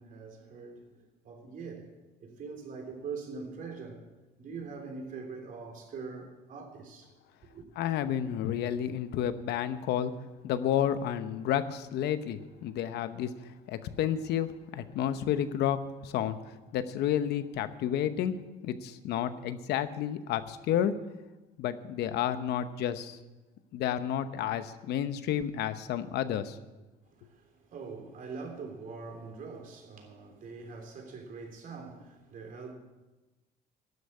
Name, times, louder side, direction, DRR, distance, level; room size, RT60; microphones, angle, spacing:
voice 1, 0.0-7.1 7.4-7.7 27.0-32.7, right 4 dB, 55° right, 3.4 m, -43 dB
voice 2, 7.8-10.1 10.4-18.3 18.6-20.9 21.6-23.2 23.7-26.6, left 10 dB, 80° left, 0.9 m, -31 dB
12.0 x 8.1 x 9.7 m
cardioid pair, 110°, 17 cm